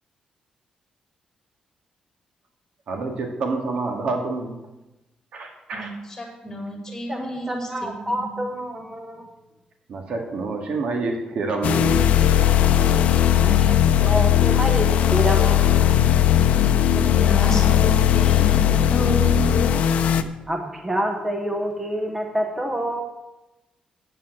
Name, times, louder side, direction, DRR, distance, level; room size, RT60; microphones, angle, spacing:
voice 1, 2.9-4.5 5.3-5.9 9.9-12.0, right 3 dB, 55° right, 2 dB, 2.0 m, -27 dB
voice 2, 5.7-8.3 16.9-19.5, equal, 10° left, 0 dB, 2.2 m, -30 dB
voice 3, 7.1-9.3 13.4-16.0 20.5-23.0, right 1 dB, 15° right, 3 dB, 1.0 m, -27 dB
sound 1, 11.6-20.2, left 10 dB, 75° left, 0.8 m, -18 dB
11.0 x 8.7 x 7.7 m, 0.99 s
wide cardioid pair, 180°, 2 cm